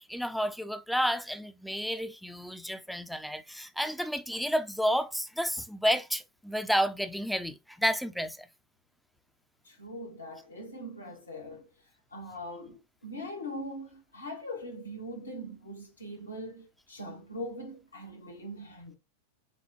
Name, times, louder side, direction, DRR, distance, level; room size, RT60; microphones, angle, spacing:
voice 1, 0.0-8.5, equal, ahead, 0.5 m, -31 dB
voice 2, 9.6-11.7 12.1-19.0, equal, 75° left, 1.2 m, -41 dB
6.5 x 2.2 x 2.7 m
figure-of-eight pair, 90°, 0 cm